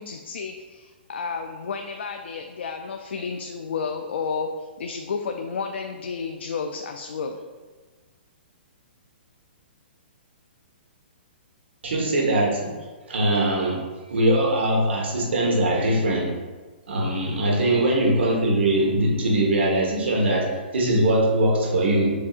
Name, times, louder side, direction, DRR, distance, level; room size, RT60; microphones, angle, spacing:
voice 1, 0.0-7.4, left 5 dB, 80° left, 4 dB, 0.4 m, -31 dB
voice 2, 11.8-12.7 13.1-13.8 14.1-16.3 16.9-22.1, right 1 dB, 85° right, -2 dB, 1.3 m, -21 dB
6.7 x 2.7 x 2.5 m, 1.3 s
hypercardioid pair, 155°, 6 cm